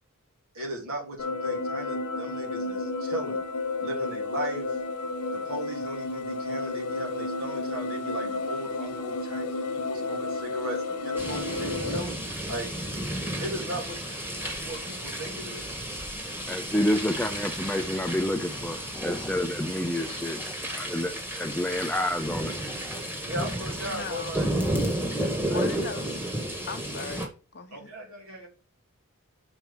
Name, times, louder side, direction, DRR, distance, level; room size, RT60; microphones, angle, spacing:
voice 1, 0.5-3.4 3.8-4.8 5.3-12.7 13.4-15.7 23.3-24.5 25.5-25.9 27.7-28.5, right 1 dB, 65° right, 3.1 m, -37 dB
sound 1, 1.2-12.0, left 3 dB, 85° left, 1.1 m, -32 dB
sound 2, 11.2-27.3, right 1 dB, 10° right, 1.8 m, -32 dB
voice 2, 16.5-23.0, left 1 dB, 5° left, 0.5 m, -29 dB
voice 3, 23.9-24.3 25.5-26.1 26.7-27.2 27.5-27.9, left 4 dB, 50° left, 1.0 m, -37 dB
5.9 x 4.5 x 5.4 m
head